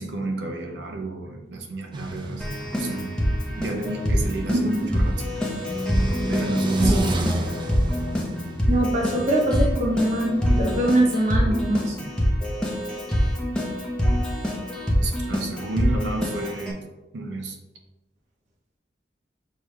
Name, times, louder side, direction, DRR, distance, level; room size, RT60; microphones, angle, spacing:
voice 1, 0.0-2.5 2.7-3.2 3.6-5.2 6.3-7.2 15.0-16.8 17.1-17.6, right 2 dB, 80° right, 3 dB, 0.7 m, -31 dB
sound 1, 1.9-10.9, right 1 dB, 25° right, 0.4 m, -31 dB
Keyboard (musical), 2.4-16.7, equal, 5° left, 0.7 m, -25 dB
voice 2, 4.5-4.9 6.8-7.0 8.7-11.9, right 1 dB, 40° right, -2 dB, 0.8 m, -23 dB
6.5 x 2.3 x 3.2 m, 1.1 s
head